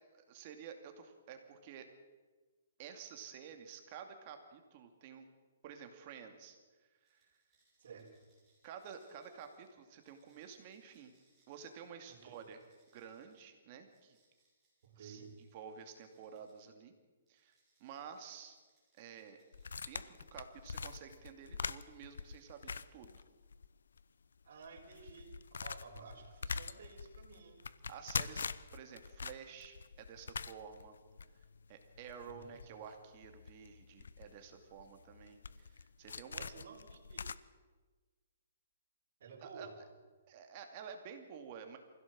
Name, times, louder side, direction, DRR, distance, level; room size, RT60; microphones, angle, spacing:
voice 1, 0.1-1.9 2.8-5.3 5.6-7.4 8.6-11.1 11.5-12.6 12.9-14.2 15.0-15.2 15.5-16.9 17.3-18.6 19.0-19.4 19.9-23.2 27.9-31.0 31.3-31.4 31.7-36.5 39.4-39.7 40.3-41.8, right 7 dB, 30° right, 6 dB, 2.5 m, -51 dB
sound 1, 7.0-16.7 17.3-21.2 21.6-23.4, right 2 dB, 10° right, 6.6 m, -77 dB
voice 2, 7.8-8.3 12.1-12.4 14.8-15.3 24.4-25.3 25.6-27.6 32.2-32.7 36.4-37.2 39.2-39.7, right 5 dB, 55° right, -2 dB, 4.8 m, -53 dB
sound 2, 19.5-23.7 24.0-24.1 24.6-37.3, left 5 dB, 90° left, 0.8 m, -44 dB
23.5 x 16.0 x 7.6 m, 1.3 s
hypercardioid pair, 165°, 0 cm